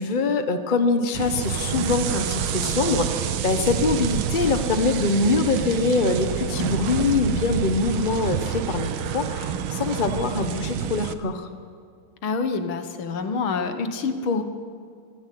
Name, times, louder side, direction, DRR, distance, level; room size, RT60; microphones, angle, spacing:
voice 1, 0.0-11.5, left 3 dB, 30° left, 8 dB, 1.2 m, -24 dB
sound 1, 1.1-11.1, right 9 dB, 85° right, 1.8 m, -28 dB
voice 2, 12.2-14.4, left 4 dB, 85° left, 8 dB, 2.2 m, -26 dB
24.5 x 14.5 x 8.5 m, 2.2 s
omnidirectional pair, 2.2 m